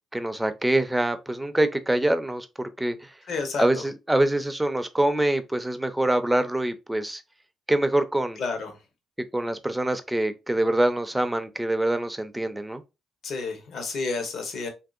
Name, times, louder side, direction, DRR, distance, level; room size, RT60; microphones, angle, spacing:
voice 1, 0.1-3.1 3.6-7.2 7.7-8.4 9.3-12.8, right 1 dB, 10° right, 0.5 m, -25 dB
voice 2, 3.3-3.6 8.4-8.7 13.2-14.7, left 4 dB, 65° left, 1.0 m, -30 dB
3.0 x 2.7 x 2.5 m
cardioid pair, 85°, 0 cm